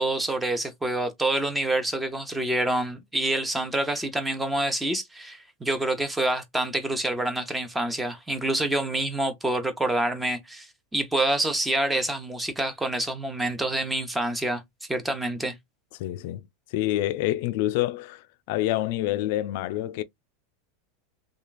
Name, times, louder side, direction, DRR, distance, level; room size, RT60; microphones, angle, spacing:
voice 1, 0.0-14.6 14.9-15.6, right 1 dB, 10° right, 0.8 m, -27 dB
voice 2, 16.0-16.5 16.7-20.0, left 15 dB, 60° left, 0.4 m, -27 dB
2.9 x 2.3 x 2.4 m
hypercardioid pair, 110°, 0 cm